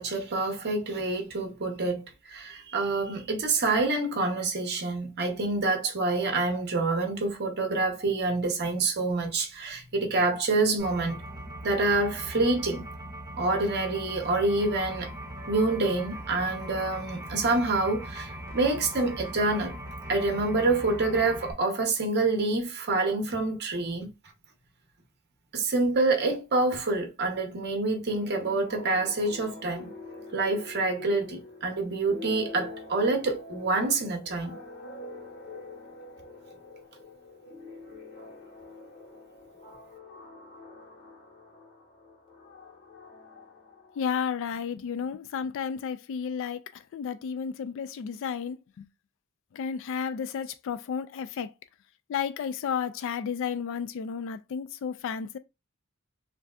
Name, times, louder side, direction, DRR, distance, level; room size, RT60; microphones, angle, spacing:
voice 1, 0.0-11.2 11.6-12.9 13.4-15.1 15.5-19.8 20.1-24.1 25.5-29.9 30.3-34.6, right 3 dB, 50° right, 0.8 m, -27 dB
sound 1, 10.8-21.5, right 1 dB, 15° right, 0.8 m, -40 dB
sound 2, 28.1-44.5, left 2 dB, 45° left, 1.4 m, -45 dB
voice 2, 44.0-48.9 49.5-51.5 52.1-55.4, left 7 dB, 60° left, 0.3 m, -32 dB
3.3 x 2.6 x 2.3 m
head